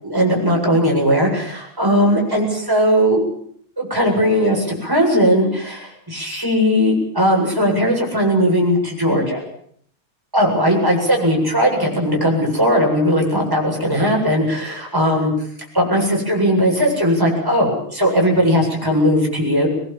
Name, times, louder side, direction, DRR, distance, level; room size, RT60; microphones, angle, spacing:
voice 1, 0.0-3.2 3.8-9.4 10.3-15.3 15.7-19.7, equal, 5° right, -1 dB, 8.0 m, -18 dB
23.5 x 22.0 x 7.6 m, 0.63 s
omnidirectional pair, 3.4 m